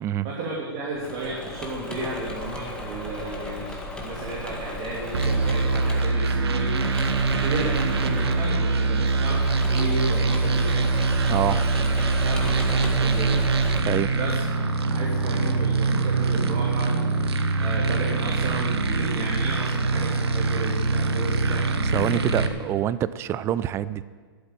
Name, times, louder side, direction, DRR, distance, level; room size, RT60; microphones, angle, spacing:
voice 1, 0.2-11.0 11.3-13.4 14.1-14.4 14.9-17.0 17.3-22.6, right 2 dB, 40° right, -2 dB, 2.9 m, -33 dB
Engine / Mechanisms, 0.9-13.8, left 1 dB, 5° left, 2.0 m, -36 dB
sound 1, 5.1-22.5, right 3 dB, 80° right, 1.2 m, -23 dB
voice 2, 11.3-11.7 13.9-14.2 21.9-24.0, right 11 dB, 20° right, 17 dB, 0.4 m, -26 dB
13.0 x 8.1 x 9.0 m, 1.5 s
hypercardioid pair, 130°, 13 cm